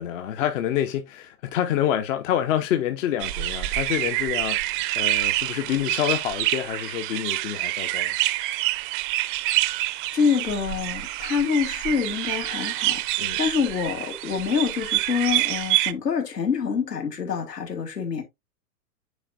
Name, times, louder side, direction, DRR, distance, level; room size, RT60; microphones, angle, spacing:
voice 1, 0.0-8.1 13.2-13.4, left 11 dB, 55° left, 1.0 m, -27 dB
sound 1, 3.2-15.9, right 18 dB, 35° right, 0.5 m, -27 dB
voice 2, 10.1-18.2, left 6 dB, 85° left, 2.6 m, -26 dB
9.8 x 4.1 x 2.6 m
hypercardioid pair, 110°, 47 cm